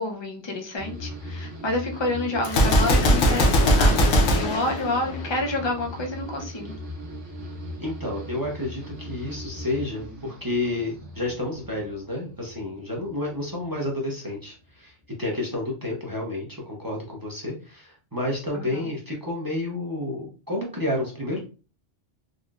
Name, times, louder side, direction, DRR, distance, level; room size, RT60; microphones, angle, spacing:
voice 1, 0.0-6.7 18.5-18.9, left 2 dB, 40° left, 2 dB, 0.4 m, -29 dB
sound 1, 0.8-14.1 14.4-15.0, equal, 75° right, 1.2 m, -39 dB
Gunshot gunfire, 2.4-5.6, equal, 75° left, 1.0 m, -20 dB
voice 2, 7.8-21.4, left 2 dB, 25° right, -2 dB, 0.6 m, -30 dB
3.9 x 2.1 x 2.3 m, 0.35 s
omnidirectional pair, 1.2 m